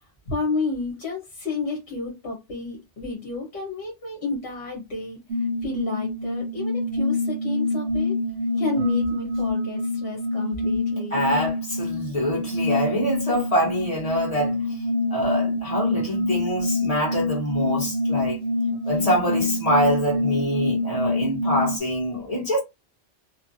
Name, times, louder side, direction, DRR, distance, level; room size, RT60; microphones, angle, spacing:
voice 1, 0.3-5.2 5.6-8.2 8.6-11.3, left 3 dB, 65° left, 1.3 m, -31 dB
sound 1, 5.3-21.8, left 2 dB, 60° right, 0.7 m, -26 dB
voice 2, 11.1-14.6 15.1-18.4 18.8-22.6, equal, 30° left, 1.4 m, -25 dB
3.2 x 2.2 x 2.6 m
omnidirectional pair, 1.2 m